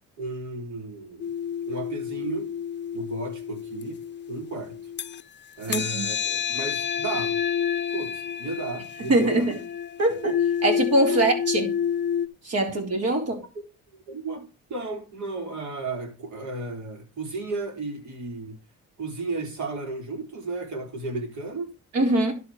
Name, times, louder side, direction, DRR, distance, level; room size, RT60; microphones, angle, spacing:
voice 1, 0.2-1.3 1.7-2.5 2.9-4.0 4.3-4.8 5.6-7.4 7.9-9.6 10.1-10.2 11.1-11.2 13.3-13.4 14.1-18.6 19.0-21.7, right 3 dB, 70° right, 3.7 m, -34 dB
sound 1, 1.2-5.2 5.6-12.3, left 8 dB, 35° left, 0.6 m, -29 dB
voice 2, 5.7-6.1 9.1-9.6 10.0-10.3 10.6-11.8 12.4-13.4 21.9-22.3, right 1 dB, 55° right, 3.8 m, -22 dB
11.0 x 4.9 x 6.2 m
cardioid pair, 90°, 30 cm